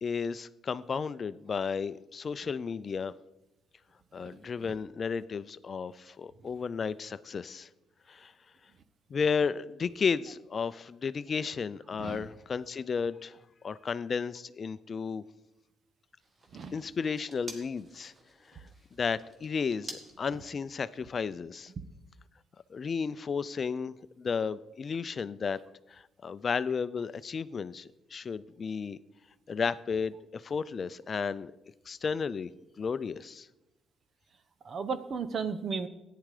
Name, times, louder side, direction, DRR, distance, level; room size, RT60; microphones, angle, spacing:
voice 1, 0.0-3.1 4.1-7.7 8.1-8.3 9.1-15.2 16.7-18.1 18.5-18.6 18.9-21.7 22.7-25.6 25.9-29.0 29.5-31.5 31.9-32.5 32.8-33.5, left 5 dB, 45° left, 16 dB, 0.5 m, -33 dB
sound 1, 16.2-21.3, right 1 dB, 35° right, 2.1 m, -50 dB
voice 2, 34.6-35.9, right 5 dB, 50° right, 13 dB, 1.0 m, -34 dB
14.0 x 10.0 x 4.9 m, 0.97 s
cardioid pair, 90°, 0 cm